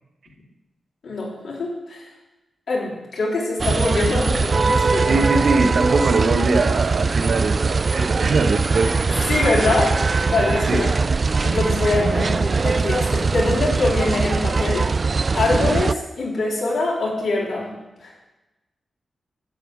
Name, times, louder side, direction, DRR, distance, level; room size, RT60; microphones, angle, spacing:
voice 1, 1.0-2.0 2.7-5.3 9.3-10.9 11.4-14.9 15.3-17.7 18.0-18.1, left 2 dB, 70° left, -5 dB, 4.0 m, -23 dB
sound 1, 3.6-15.9, right 4 dB, 35° right, 0.3 m, -21 dB
voice 2, 5.1-9.0 10.7-10.9, right 3 dB, 60° right, 4 dB, 1.3 m, -21 dB
12.0 x 5.6 x 8.7 m, 1.0 s
wide cardioid pair, 145°, 0 cm